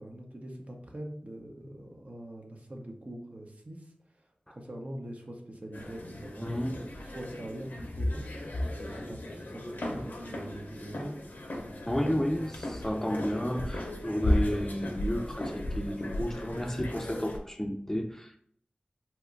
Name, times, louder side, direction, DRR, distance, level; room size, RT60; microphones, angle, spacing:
voice 1, 0.0-3.9 4.5-6.9 7.1-8.5 8.8-11.1, right 1 dB, 50° right, 1 dB, 0.7 m, -43 dB
sound 1, 5.7-17.4, left 1 dB, 90° left, 0.5 m, -35 dB
voice 2, 6.4-6.8 11.9-18.4, equal, 15° left, 3 dB, 0.4 m, -32 dB
2.9 x 2.2 x 3.7 m, 0.64 s
wide cardioid pair, 55°, 3 cm